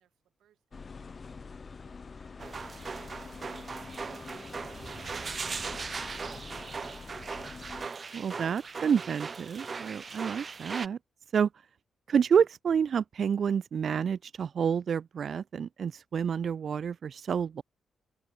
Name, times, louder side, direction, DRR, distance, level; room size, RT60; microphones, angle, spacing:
voice 1, 0.0-6.6, right 11 dB, 90° right, 7.9 m, -71 dB
sound 1, 0.7-7.9, left 4 dB, 35° left, 1.3 m, -45 dB
sound 2, 2.4-10.9, right 5 dB, 35° right, 1.1 m, -39 dB
voice 2, 8.1-11.0 11.3-11.5 12.1-17.6, right 7 dB, 55° right, 0.3 m, -28 dB
open air
cardioid pair, 120°, 0 cm